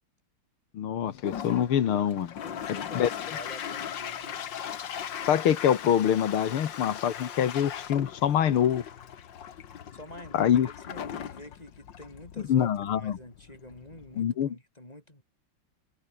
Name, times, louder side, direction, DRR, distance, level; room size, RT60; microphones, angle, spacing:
voice 1, 0.7-2.3 2.7-3.1 5.2-8.8 10.3-10.7 12.5-13.1 14.2-14.6, left 9 dB, 85° left, 2.3 m, -25 dB
Toilet flush, 1.1-14.2, left 9 dB, 60° left, 2.0 m, -39 dB
voice 2, 2.4-4.4 9.9-15.2, left 1 dB, 15° left, 8.2 m, -47 dB
omnidirectional pair, 2.3 m